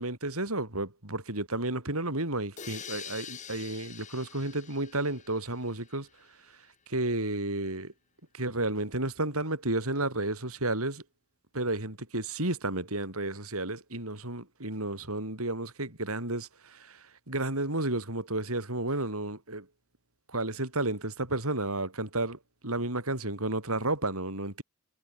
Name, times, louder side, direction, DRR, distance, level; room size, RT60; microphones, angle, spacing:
voice 1, 0.0-6.1 6.9-7.9 8.3-11.0 11.5-19.7 20.3-24.6, right 2 dB, 75° right, 6.3 m, -32 dB
sound 1, 2.6-6.3, left 7 dB, 35° left, 5.0 m, -46 dB
head